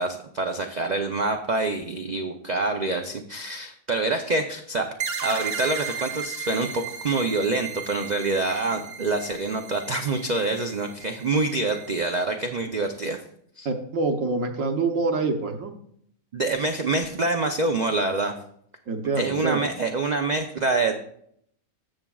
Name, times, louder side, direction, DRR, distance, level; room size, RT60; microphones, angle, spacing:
voice 1, 0.0-4.9 5.2-13.2 13.6-13.7 16.3-18.3 19.2-21.0, right 3 dB, 90° right, 5 dB, 0.3 m, -26 dB
sound 1, 5.0-12.2, right 7 dB, 45° right, 0.9 m, -36 dB
voice 2, 13.6-15.7 18.9-19.7, right 3 dB, 65° right, 5 dB, 1.2 m, -26 dB
12.5 x 7.2 x 2.3 m, 0.67 s
omnidirectional pair, 1.6 m